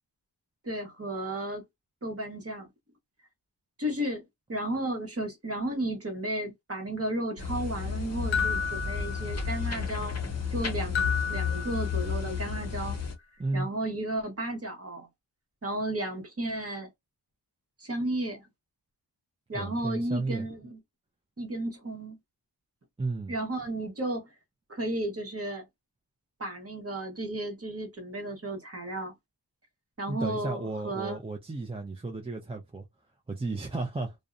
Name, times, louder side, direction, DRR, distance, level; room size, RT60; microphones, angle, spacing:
voice 1, 0.6-1.6 2.0-2.7 3.8-4.2 4.5-10.2 10.5-13.0 13.5-15.1 15.6-16.9 17.8-18.5 19.5-20.8 21.4-22.2 23.3-24.3 24.7-25.7 26.4-29.1 30.0-31.2, right 1 dB, 30° right, 1.0 m, -33 dB
sound 1, 7.4-13.1, left 6 dB, 35° left, 0.7 m, -32 dB
sound 2, 8.3-9.8 11.0-12.4, left 6 dB, 85° left, 0.5 m, -32 dB
voice 2, 19.5-20.5 23.0-23.4 30.1-32.8 33.3-34.2, right 3 dB, 15° right, 0.4 m, -33 dB
2.6 x 2.1 x 2.4 m
wide cardioid pair, 80°, 44 cm